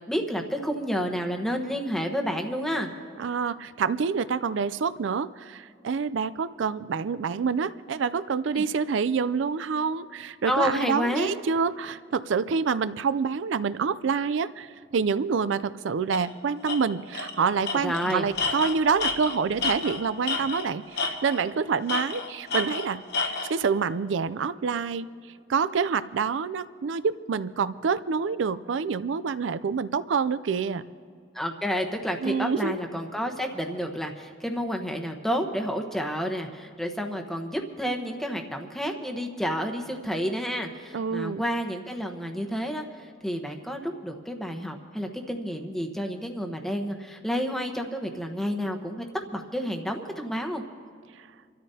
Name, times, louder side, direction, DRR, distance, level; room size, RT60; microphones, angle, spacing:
voice 1, 0.0-2.9 8.5-8.6 10.5-11.3 17.7-18.3 31.3-50.6, equal, ahead, 3 dB, 1.0 m, -30 dB
voice 2, 3.2-25.1 25.5-30.8 32.2-32.8 40.9-41.4, right 5 dB, 70° right, 15 dB, 0.4 m, -27 dB
Tools, 16.1-16.3 16.7-16.8 17.1-17.3 17.6-20.7 21.0-21.5 21.9-23.5, left 4 dB, 55° left, 1.3 m, -30 dB
29.0 x 13.5 x 2.8 m, 2.2 s
head